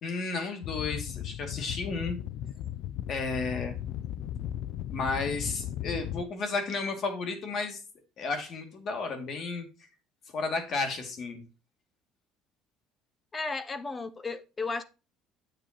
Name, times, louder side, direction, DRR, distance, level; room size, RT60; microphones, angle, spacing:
voice 1, 0.0-2.2 3.1-3.8 4.9-7.8 8.2-9.7 10.3-11.4, left 4 dB, 45° left, 5 dB, 2.4 m, -32 dB
sound 1, 0.6-6.2, left 11 dB, 60° left, 0.4 m, -36 dB
voice 2, 13.3-14.8, left 3 dB, 20° left, 13 dB, 0.6 m, -34 dB
8.6 x 7.6 x 3.0 m, 0.31 s
cardioid pair, 140°, 0 cm